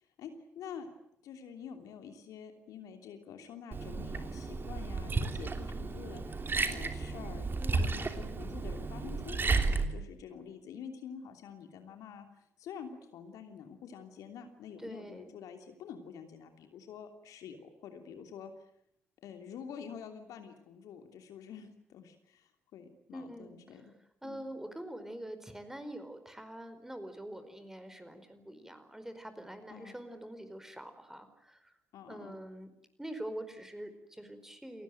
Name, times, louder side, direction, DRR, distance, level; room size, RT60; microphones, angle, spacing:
voice 1, 0.2-0.9 1.2-7.5 7.8-9.6 9.9-12.3 12.6-18.5 19.2-23.9 24.2-24.4 29.7-30.0 31.9-32.4, left 7 dB, 60° left, 6 dB, 3.0 m, -47 dB
Liquid, 3.7-9.8, right 4 dB, 30° right, 3.1 m, -33 dB
voice 2, 7.6-7.9 14.8-15.3 23.1-23.8 24.2-31.7 32.1-32.7 33.0-34.8, right 1 dB, 5° right, 10 dB, 4.8 m, -45 dB
29.0 x 19.0 x 9.2 m, 0.74 s
figure-of-eight pair, 45°, 7 cm